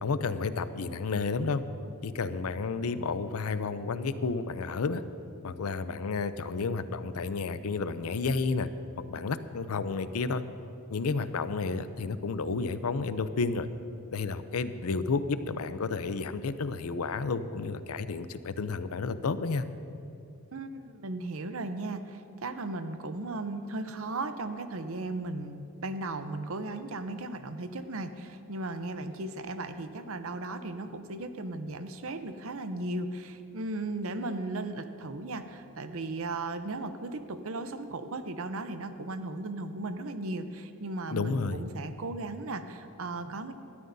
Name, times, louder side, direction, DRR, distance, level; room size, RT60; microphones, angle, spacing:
voice 1, 0.0-1.6 2.0-5.0 5.4-8.7 9.0-10.4 10.9-13.7 14.1-19.7 41.1-41.6, left 4 dB, 75° left, 12 dB, 0.5 m, -31 dB
voice 2, 20.5-43.5, right 2 dB, 65° right, 9 dB, 0.7 m, -36 dB
18.5 x 13.0 x 2.7 m, 2.7 s
head